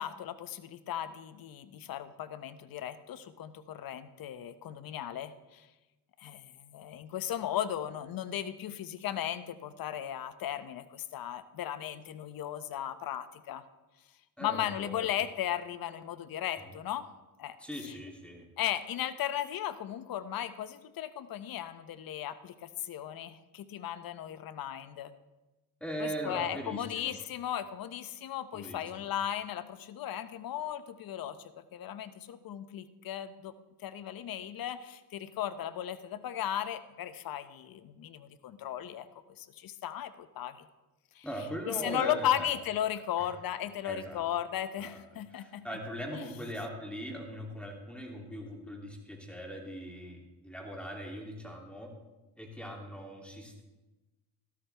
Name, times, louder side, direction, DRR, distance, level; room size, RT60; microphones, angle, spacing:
voice 1, 0.0-5.7 6.2-13.6 14.4-17.0 17.4-17.6 17.9-18.0 18.6-25.1 26.0-33.5 33.8-39.1 39.4-40.6 41.2-41.3 41.6-45.8 46.1-46.2, left 10 dB, 55° left, 13 dB, 0.8 m, -36 dB
voice 2, 14.4-15.1 16.6-16.7 17.6-18.5 25.8-27.1 28.5-28.8 41.2-42.5 43.2-43.3 43.8-44.2 44.8-45.0 45.3-51.9 52.4-53.6, equal, 5° left, 0 dB, 2.7 m, -40 dB
13.0 x 12.5 x 3.4 m, 1.1 s
supercardioid pair, 75°, 41 cm